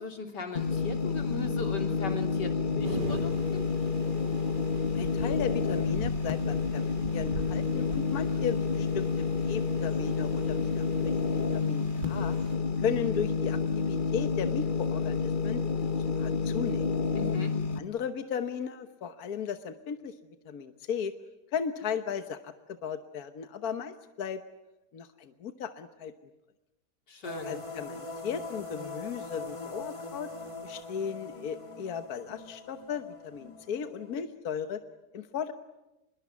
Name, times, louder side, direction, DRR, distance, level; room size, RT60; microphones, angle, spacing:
voice 1, 0.0-3.6 17.1-17.5 27.1-27.5, left 3 dB, 90° left, 4 dB, 3.7 m, -38 dB
sound 1, 0.5-17.8, left 5 dB, 35° left, 1.2 m, -29 dB
sound 2, 2.8-12.6, right 2 dB, 85° right, 3.9 m, -42 dB
voice 2, 4.9-12.3 12.8-15.6 16.0-16.9 17.8-20.1 20.4-21.1 21.5-24.4 24.9-26.1 27.4-30.3 30.6-34.8 35.1-35.5, left 7 dB, 65° left, 8 dB, 1.6 m, -36 dB
sound 3, 27.2-34.2, left 3 dB, 20° left, 2.3 m, -42 dB
26.0 x 22.0 x 9.6 m, 0.99 s
omnidirectional pair, 1.8 m